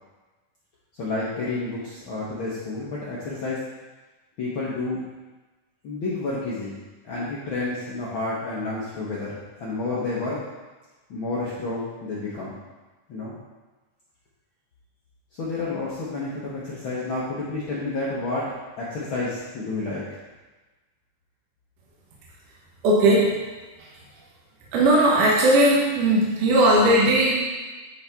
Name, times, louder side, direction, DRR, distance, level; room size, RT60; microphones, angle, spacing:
voice 1, 1.0-3.6 4.4-5.0 5.8-6.8 7.0-10.4 11.1-12.6 13.1-13.4 15.4-20.1, left 3 dB, 70° left, -7 dB, 1.2 m, -30 dB
voice 2, 22.8-23.4 23.8-23.9 24.7-27.4, right 1 dB, 75° right, -5 dB, 2.5 m, -18 dB
10.0 x 4.0 x 3.5 m, 1.2 s
omnidirectional pair, 3.8 m